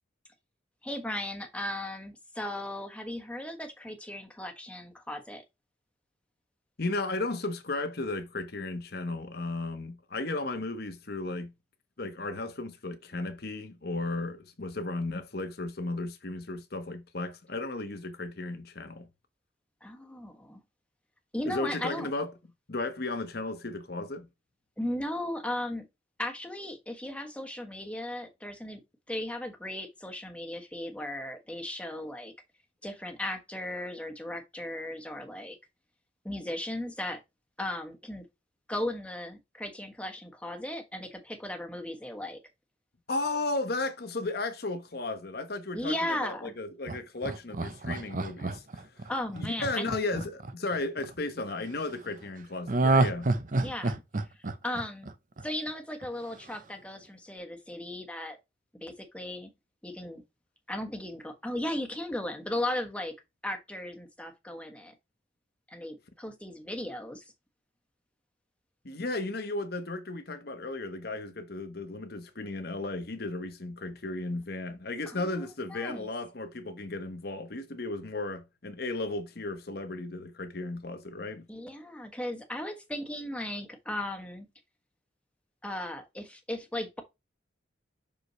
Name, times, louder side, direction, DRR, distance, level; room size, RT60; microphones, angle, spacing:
voice 1, 0.8-5.4 19.8-20.6 21.3-22.1 24.8-25.9 26.2-28.8 29.1-32.3 32.8-35.6 36.2-37.2 37.6-38.3 38.7-42.4 45.7-46.5 49.1-49.9 53.6-54.0 54.3-55.1 55.4-58.4 58.8-59.5 59.8-60.2 60.7-63.1 63.4-64.9 65.7-67.3 75.1-75.3 75.7-76.1 81.5-84.5 85.6-87.0, left 1 dB, 5° left, 1.2 m, -36 dB
voice 2, 6.8-11.5 12.0-19.1 21.4-22.3 22.7-24.3 43.1-53.3 68.8-81.5, left 2 dB, 55° left, 1.1 m, -35 dB
Laughter, 46.9-51.1 52.7-55.7 56.0-56.1, right 2 dB, 45° right, 0.6 m, -29 dB
6.1 x 5.3 x 3.1 m
head